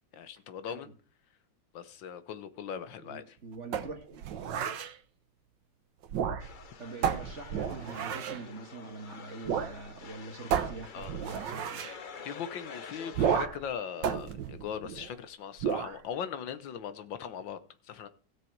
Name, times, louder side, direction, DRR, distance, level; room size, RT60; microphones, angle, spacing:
voice 1, 0.1-0.9 1.7-3.4 10.9-11.2 12.2-17.6 17.8-18.1, left 8 dB, 85° left, 1.7 m, -39 dB
voice 2, 3.0-4.7 6.8-11.8, right 3 dB, 40° right, 1.7 m, -44 dB
sound 1, 3.7-4.9 6.0-6.7 7.0-8.4 9.5-9.8 10.0-10.1 10.5-12.0 13.1-13.7 14.0-15.2 15.6-16.0, right 8 dB, 75° right, 1.6 m, -32 dB
sound 2, 6.4-13.5, left 6 dB, 55° left, 0.5 m, -48 dB
16.5 x 6.8 x 4.6 m
omnidirectional pair, 2.0 m